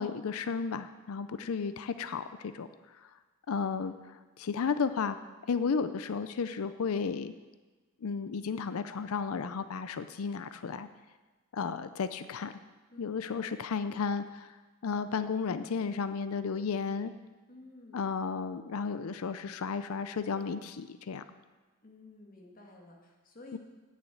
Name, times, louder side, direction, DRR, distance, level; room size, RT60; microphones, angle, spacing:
voice 1, 0.0-3.1 3.5-5.2 5.5-7.3 8.0-10.9 11.5-12.5 13.0-17.1 17.9-21.2 23.5-23.6, left 5 dB, 70° left, 12 dB, 0.5 m, -33 dB
voice 2, 1.4-1.7 3.5-4.1 12.9-13.4 17.5-18.1 21.8-23.6, left 2 dB, 40° left, 0 dB, 1.9 m, -53 dB
8.8 x 7.5 x 8.3 m, 1.3 s
head